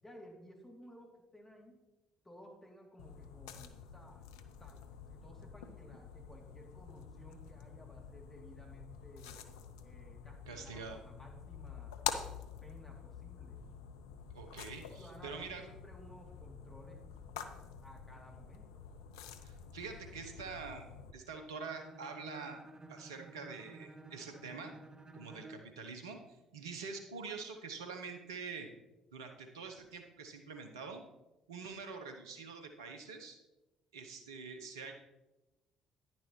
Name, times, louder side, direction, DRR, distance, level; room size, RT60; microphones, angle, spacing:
voice 1, 0.0-1.8 2.2-4.2 4.6-9.4 9.8-12.0 12.6-13.6 14.9-17.1 17.8-18.8, equal, 15° left, 0 dB, 2.8 m, -56 dB
sound 1, 3.0-21.1, left 8 dB, 80° left, 0.5 m, -47 dB
voice 2, 10.5-11.0 14.3-15.6 19.4-22.6 22.9-24.7 25.1-26.2 26.5-28.7 29.1-31.0 31.5-33.4 33.9-34.9, right 5 dB, 85° right, 5 dB, 0.9 m, -45 dB
Bowed string instrument, 21.5-25.8, right 2 dB, 30° right, 1.2 m, -53 dB
10.0 x 10.0 x 3.1 m, 1.0 s
hypercardioid pair, 50°, 2 cm